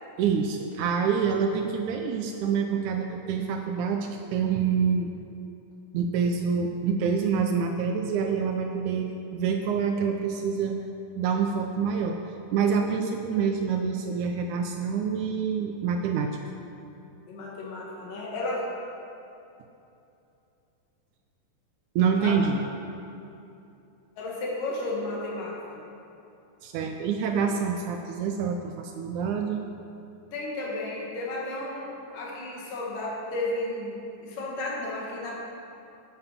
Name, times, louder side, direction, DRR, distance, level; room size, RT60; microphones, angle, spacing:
voice 1, 0.2-5.1 5.9-10.8 11.2-12.2 12.5-16.3 22.0-22.6 26.6-29.6, right 6 dB, 80° right, 4 dB, 1.9 m, -26 dB
voice 2, 17.3-18.7 22.2-22.4 24.2-25.8 30.3-35.4, left 2 dB, 80° left, -4 dB, 3.3 m, -33 dB
9.9 x 7.8 x 5.8 m, 2.8 s
omnidirectional pair, 3.7 m